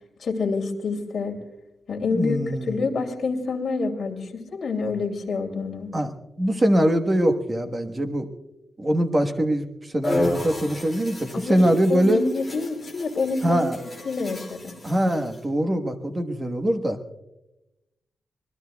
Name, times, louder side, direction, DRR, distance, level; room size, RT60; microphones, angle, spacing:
voice 1, 0.2-1.4 1.9-5.9 11.3-13.6 14.0-14.8, left 4 dB, 50° left, 1 dB, 2.7 m, -27 dB
voice 2, 2.1-2.8 5.9-6.1 6.4-8.3 8.8-12.2 13.4-13.8 14.8-17.0, right 1 dB, 20° right, 6 dB, 1.3 m, -23 dB
sound 1, 10.0-15.4, left 1 dB, 5° left, 5.3 m, -32 dB
25.5 x 21.0 x 2.3 m, 0.94 s
wide cardioid pair, 150°, 0 cm